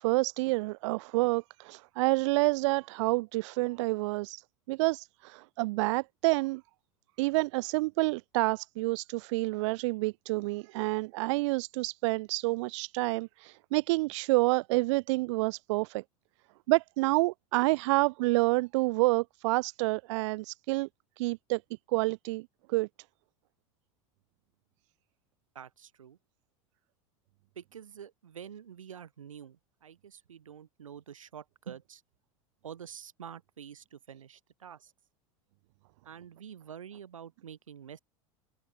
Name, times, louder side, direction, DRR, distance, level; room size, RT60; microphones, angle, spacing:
voice 1, 0.0-6.6 7.2-16.0 16.7-20.9 21.2-21.6 21.9-22.9, right 23 dB, 65° right, 1.0 m, -28 dB
voice 2, 25.5-26.2 27.5-32.0 32.6-34.9 36.0-38.0, right 8 dB, 90° right, 4.5 m, -47 dB
open air
hypercardioid pair, 90°, 16 cm